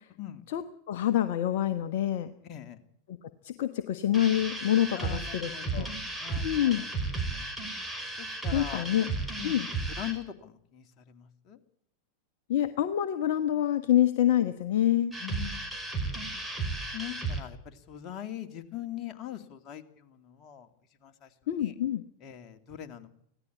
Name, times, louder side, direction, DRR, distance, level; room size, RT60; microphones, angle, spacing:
voice 1, 0.5-2.3 3.1-3.2 3.4-5.9 6.4-6.8 8.5-9.1 9.4-9.7 12.5-15.1 21.5-22.0, left 11 dB, 50° left, 10 dB, 1.1 m, -27 dB
voice 2, 2.4-2.8 4.9-6.8 7.2-7.5 8.2-9.6 10.0-11.6 15.2-15.6 16.6-20.7 21.0-21.3 21.6-21.7 22.2-23.1, left 11 dB, 35° left, 6 dB, 2.5 m, -42 dB
sound 1, 4.1-10.2 15.1-17.4, right 3 dB, 5° right, 5.1 m, -34 dB
25.5 x 16.5 x 8.6 m, 0.72 s
figure-of-eight pair, 90°, 0 cm